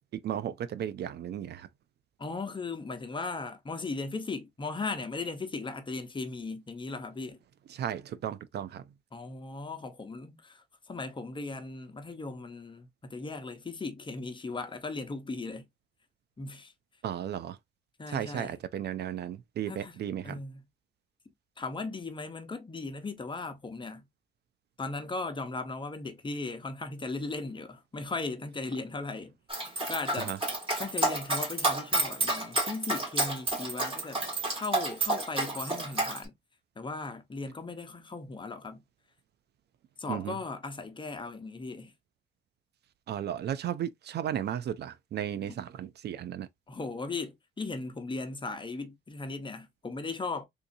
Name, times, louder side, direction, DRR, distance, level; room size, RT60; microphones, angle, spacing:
voice 1, 0.2-1.7 7.7-8.8 17.0-17.6 18.1-20.4 30.2-30.4 40.1-40.3 43.1-46.5, right 10 dB, 55° right, 0.4 m, -35 dB
voice 2, 2.2-7.4 9.1-15.7 16.4-16.7 18.0-18.6 19.7-20.6 21.6-24.0 24.8-29.4 29.9-30.4 30.8-36.3 36.8-38.8 40.0-41.9 45.5-45.6 46.7-50.5, left 3 dB, 25° left, 0.9 m, -37 dB
Dog, 29.5-36.2, right 2 dB, 25° right, 2.1 m, -30 dB
3.7 x 2.7 x 2.6 m
cardioid pair, 90°, 20 cm